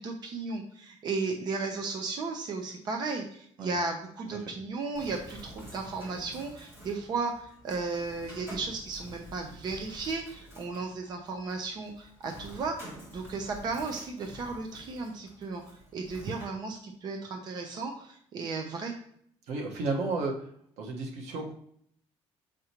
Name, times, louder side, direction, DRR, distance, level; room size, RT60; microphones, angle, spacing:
voice 1, 0.0-12.7 13.1-15.6 15.9-18.9, right 4 dB, 40° right, 3 dB, 0.8 m, -35 dB
Bird, 4.9-16.4, equal, 20° right, 2.2 m, -49 dB
voice 2, 19.5-20.3 20.8-21.5, right 3 dB, 90° right, 1 dB, 1.4 m, -32 dB
6.9 x 5.1 x 3.0 m, 0.65 s
cardioid pair, 180°, 11 cm